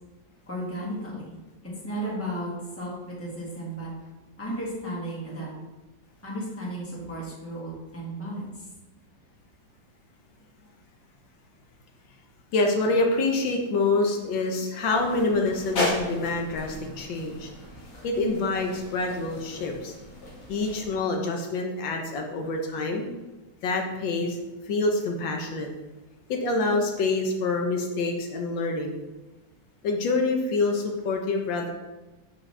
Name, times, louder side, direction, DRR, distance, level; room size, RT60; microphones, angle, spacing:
voice 1, 0.5-1.3 1.6-3.9 4.4-5.5 6.2-8.6, right 1 dB, 10° left, -4 dB, 1.5 m, -34 dB
voice 2, 12.5-17.5 18.0-19.9 20.5-23.0 23.6-24.4 24.7-25.7 26.3-29.0 29.8-31.7, left 3 dB, 75° left, 2 dB, 1.5 m, -26 dB
sound 1, 14.9-20.9, left 1 dB, 60° left, 2.0 m, -35 dB
6.5 x 6.2 x 3.2 m, 1.1 s
omnidirectional pair, 2.1 m